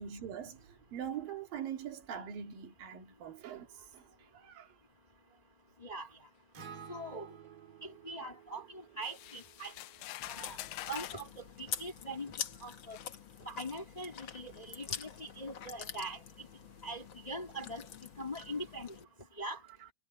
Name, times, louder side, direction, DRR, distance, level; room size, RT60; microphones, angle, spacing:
voice 1, 0.0-4.8, right 8 dB, 80° right, 3.8 m, -43 dB
Acoustic guitar, 6.5-10.8, right 7 dB, 40° right, 3.2 m, -53 dB
voice 2, 6.9-7.3 7.8-9.7 10.3-10.6 10.9-12.3 12.6-13.0 13.4-16.5 16.8-17.9 18.2-18.9 19.4-19.6, right 1 dB, 15° left, 1.7 m, -42 dB
sound 1, 9.0-11.3 12.2-12.3 12.9-13.1, left 16 dB, 85° left, 1.6 m, -45 dB
Chewing mastication, 10.2-19.0, left 8 dB, 65° left, 1.1 m, -45 dB
omnidirectional pair, 4.0 m